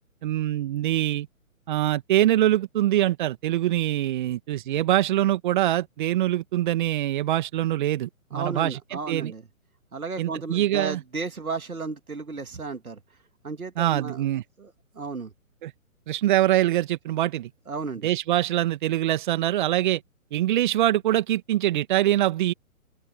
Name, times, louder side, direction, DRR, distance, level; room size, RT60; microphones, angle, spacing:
voice 1, 0.2-1.3 1.7-8.8 9.1-9.3 10.2-11.0 13.8-14.4 15.6-15.7 16.1-17.5 18.0-20.0 20.3-22.5, right 13 dB, 35° right, 1.9 m, -24 dB
voice 2, 8.3-9.4 9.9-13.0 13.4-14.3 14.6-15.3 17.7-18.1, right 4 dB, 80° right, 2.3 m, -34 dB
open air
figure-of-eight pair, 140°, 42 cm